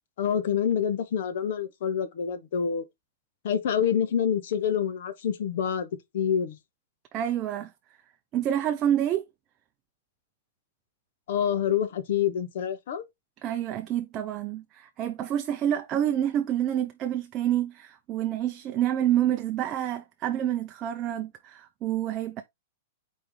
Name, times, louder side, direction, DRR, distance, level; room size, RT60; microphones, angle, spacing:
voice 1, 0.2-2.8 3.4-5.9 6.1-6.6 11.3-13.0, left 8 dB, 65° left, 1.0 m, -27 dB
voice 2, 7.1-7.7 8.3-9.2 13.4-22.4, right 11 dB, 30° right, 0.5 m, -28 dB
4.5 x 3.5 x 3.3 m
hypercardioid pair, 140°, 0 cm